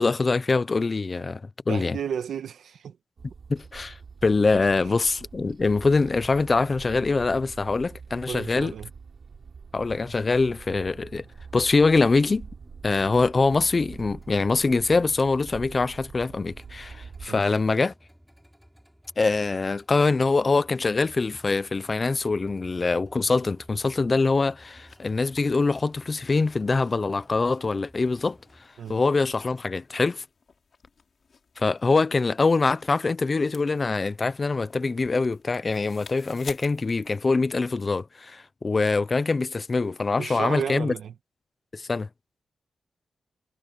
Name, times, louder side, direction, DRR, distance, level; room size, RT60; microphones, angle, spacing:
voice 1, 0.0-2.0 3.5-8.7 9.7-11.2 11.5-12.5 12.8-17.9 19.2-28.4 28.9-30.2 31.6-40.9 41.7-42.1, left 3 dB, 35° left, 0.8 m, -24 dB
voice 2, 1.7-3.0 8.3-8.9 17.3-17.4 28.8-29.0 40.2-41.1, right 8 dB, 90° right, 1.6 m, -33 dB
sound 1, 3.2-17.3, right 5 dB, 60° right, 4.4 m, -45 dB
sound 2, 12.6-28.7, equal, ahead, 7.4 m, -55 dB
sound 3, 24.6-37.9, left 5 dB, 55° left, 3.4 m, -52 dB
cardioid pair, 85°, 0 cm